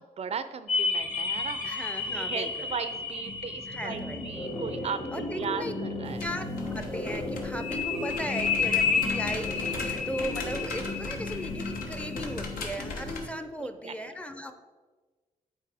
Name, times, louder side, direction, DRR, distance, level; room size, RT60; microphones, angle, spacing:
voice 1, 0.0-6.2 8.9-9.1 13.6-14.1, right 6 dB, 50° right, 12 dB, 0.4 m, -37 dB
sound 1, 0.7-6.2 7.6-12.3, left 5 dB, 70° left, 1.3 m, -32 dB
sound 2, 1.0-13.3, left 1 dB, 40° left, 1.8 m, -36 dB
voice 2, 1.6-2.8 3.7-4.5 5.1-5.7 6.2-14.5, equal, 10° left, 9 dB, 0.5 m, -37 dB
sound 3, 6.0-13.2, left 3 dB, 85° left, 0.9 m, -41 dB
8.3 x 4.1 x 3.4 m, 1.4 s
cardioid pair, 85°, 14 cm